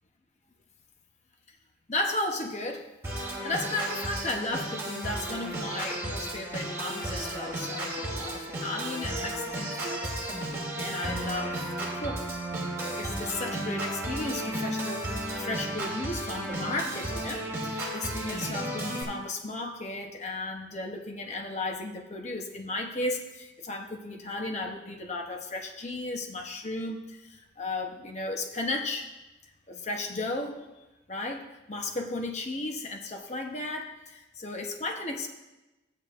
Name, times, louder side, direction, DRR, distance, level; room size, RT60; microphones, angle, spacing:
voice 1, 1.9-12.3 12.7-15.1 15.4-29.1 29.7-35.3, left 2 dB, 35° left, 2 dB, 0.8 m, -35 dB
Organ, 3.0-19.0, right 1 dB, 15° right, 2.4 m, -34 dB
14.5 x 8.5 x 2.5 m, 1.0 s
head